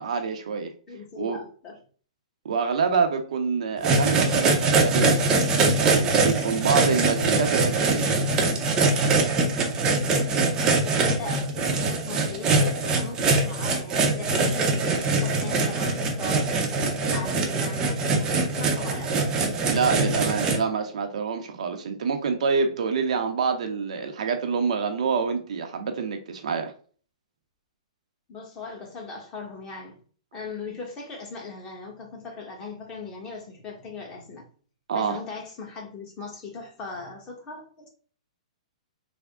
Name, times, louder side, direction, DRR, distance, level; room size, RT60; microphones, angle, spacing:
voice 1, 0.0-0.7 1.2-1.4 2.4-5.2 5.8-8.2 19.7-26.7 34.9-35.2, right 5 dB, 70° right, 0.6 m, -26 dB
voice 2, 0.9-1.8 10.3-16.5 17.1-19.1 28.3-30.0 30.3-34.5 34.9-37.9, left 4 dB, 20° left, 1.0 m, -39 dB
sound 1, 3.8-20.6, right 3 dB, 20° right, 0.6 m, -23 dB
3.4 x 2.0 x 3.5 m
hypercardioid pair, 150°, 4 cm